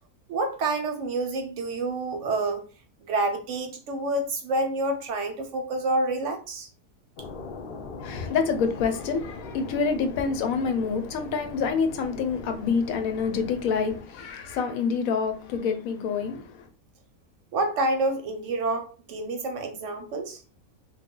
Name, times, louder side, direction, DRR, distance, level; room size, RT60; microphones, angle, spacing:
voice 1, 0.3-2.6 3.0-6.7 17.5-20.4, right 2 dB, 65° right, 0.9 m, -28 dB
sound 1, 7.2-14.0, left 3 dB, 55° left, 0.6 m, -41 dB
voice 2, 8.0-16.6, left 5 dB, 75° left, 1.0 m, -27 dB
3.2 x 2.3 x 3.7 m
omnidirectional pair, 1.5 m